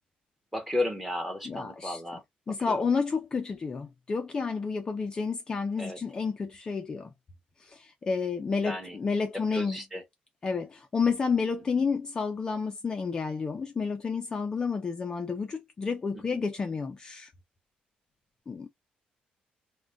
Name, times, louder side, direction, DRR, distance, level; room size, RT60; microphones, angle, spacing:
voice 1, 0.5-2.2 2.7-2.9 5.8-6.0 8.6-9.0 9.5-10.0 11.7-11.9 16.3-16.4, left 1 dB, 5° right, 1.1 m, -34 dB
voice 2, 1.5-2.0 2.5-7.1 7.6-9.8 10.4-17.3 18.5-18.7, left 5 dB, 25° left, 0.4 m, -30 dB
2.4 x 2.2 x 3.4 m
cardioid pair, 145°, 3 cm